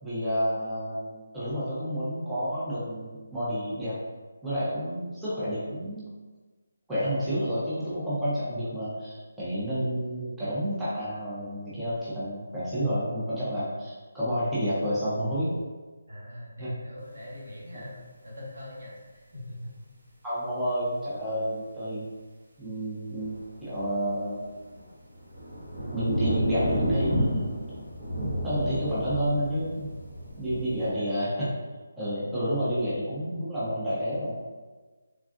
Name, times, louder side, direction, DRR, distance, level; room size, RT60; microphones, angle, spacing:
voice 1, 0.0-3.9 4.4-6.0 6.9-15.5 16.6-16.7 17.7-17.8 20.2-22.0 22.6-23.3 23.6-24.4 25.9-27.4 28.4-29.9 30.4-31.5 32.0-34.4, equal, 5° right, -12 dB, 0.6 m, -30 dB
voice 2, 16.1-19.7 30.8-31.1, left 1 dB, 80° right, -5 dB, 1.2 m, -43 dB
sound 1, 23.2-30.9, equal, 50° right, 0.9 m, -31 dB
3.5 x 2.2 x 2.4 m, 1.3 s
hypercardioid pair, 170°, 0 cm